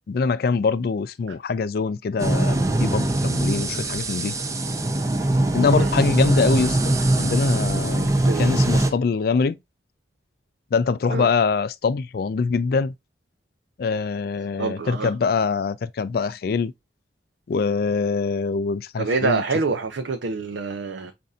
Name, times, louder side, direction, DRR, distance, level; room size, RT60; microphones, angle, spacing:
voice 1, 0.1-4.4 5.5-8.1 8.4-9.6 10.7-12.9 13.8-16.7 17.5-19.4, left 5 dB, 55° left, 0.3 m, -24 dB
sound 1, 2.2-8.9, right 1 dB, 15° right, 0.5 m, -22 dB
voice 2, 8.2-8.7 11.1-11.3 14.6-15.1 19.0-21.1, right 4 dB, 85° right, 0.5 m, -26 dB
5.3 x 2.6 x 2.4 m
head